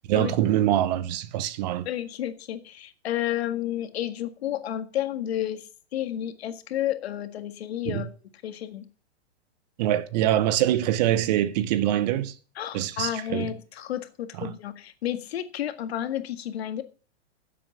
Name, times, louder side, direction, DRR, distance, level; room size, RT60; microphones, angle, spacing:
voice 1, 0.1-1.9 7.9-8.1 9.8-12.3 12.7-13.5 14.4-14.5, right 12 dB, 40° right, 0.8 m, -24 dB
voice 2, 1.9-5.6 5.9-8.1 8.4-8.9 12.6-16.8, left 11 dB, 65° left, 1.8 m, -31 dB
11.5 x 7.7 x 7.2 m
hypercardioid pair, 145°, 34 cm